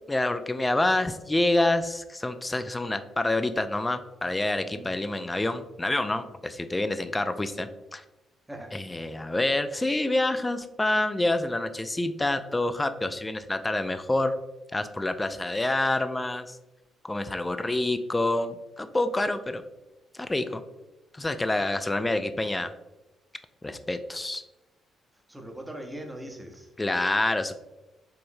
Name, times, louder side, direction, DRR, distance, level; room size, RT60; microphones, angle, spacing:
voice 1, 0.1-8.0 8.7-14.3 14.7-16.6 17.0-19.6 20.1-20.6 21.1-22.7 23.6-24.4 26.8-27.6, left 2 dB, 15° left, 10 dB, 0.3 m, -27 dB
voice 2, 8.5-8.8 15.2-15.3 25.3-26.7, right 1 dB, 10° right, 2 dB, 0.7 m, -41 dB
4.6 x 3.1 x 2.6 m, 1.0 s
cardioid pair, 90°, 0 cm